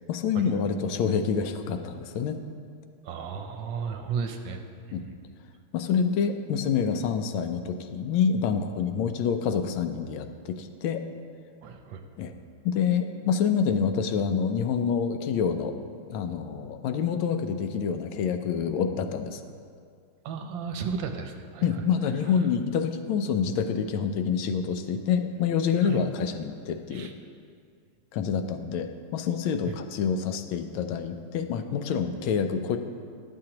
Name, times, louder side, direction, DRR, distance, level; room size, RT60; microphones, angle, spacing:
voice 1, 0.0-2.4 4.9-5.0 5.7-11.0 12.2-12.3 12.6-15.7 16.1-19.4 21.6-27.1 28.1-32.8, left 6 dB, 80° left, 8 dB, 1.3 m, -27 dB
voice 2, 3.0-4.6 5.0-5.1 11.6-12.0 20.2-21.8 22.4-22.5 25.8-26.0 26.9-27.1 29.7-29.8, right 6 dB, 75° right, 5 dB, 1.3 m, -34 dB
11.5 x 7.6 x 2.9 m, 2.2 s
omnidirectional pair, 2.2 m